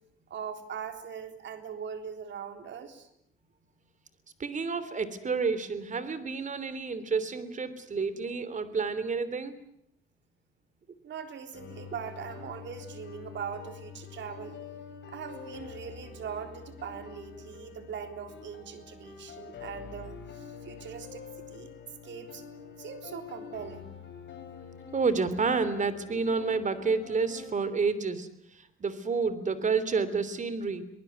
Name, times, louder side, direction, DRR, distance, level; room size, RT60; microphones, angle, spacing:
voice 1, 0.3-3.1 11.0-14.6 15.1-21.7 22.0-22.4 22.8-23.9, right 7 dB, 65° right, 7 dB, 3.7 m, -41 dB
voice 2, 4.4-9.5 24.9-30.9, right 4 dB, 40° right, 14 dB, 3.3 m, -30 dB
sound 1, 11.5-27.5, left 6 dB, 65° left, 7.9 m, -46 dB
24.0 x 19.5 x 9.5 m, 0.75 s
cardioid pair, 90°, 20 cm